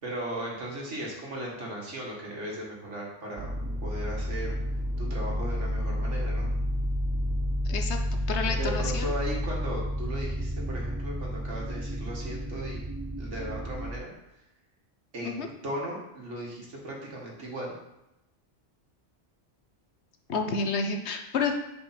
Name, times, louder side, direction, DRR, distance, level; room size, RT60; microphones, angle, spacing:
voice 1, 0.0-3.5 3.8-4.6 5.0-6.5 8.6-12.9 13.2-14.4 15.1-17.8, right 1 dB, 85° right, -3 dB, 2.2 m, -37 dB
sound 1, 3.4-13.9, equal, 25° right, 0.4 m, -31 dB
voice 2, 7.6-8.0 8.3-9.1 15.2-15.5 20.3-21.6, left 4 dB, 70° left, 5 dB, 1.1 m, -29 dB
7.5 x 5.2 x 4.3 m, 0.89 s
omnidirectional pair, 1.2 m